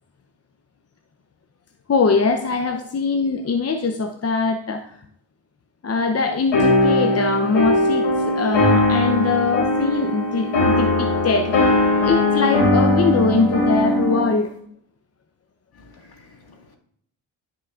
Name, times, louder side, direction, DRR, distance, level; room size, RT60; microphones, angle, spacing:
voice 1, 1.9-5.0 5.8-11.8 12.0-14.5, left 4 dB, 30° left, 0.7 m, -22 dB
sound 1, 6.5-14.3, left 1 dB, 85° left, 2.9 m, -19 dB
voice 2, 15.7-16.8, left 3 dB, 50° left, 2.1 m, -50 dB
12.5 x 5.8 x 2.5 m
cardioid pair, 55°, 47 cm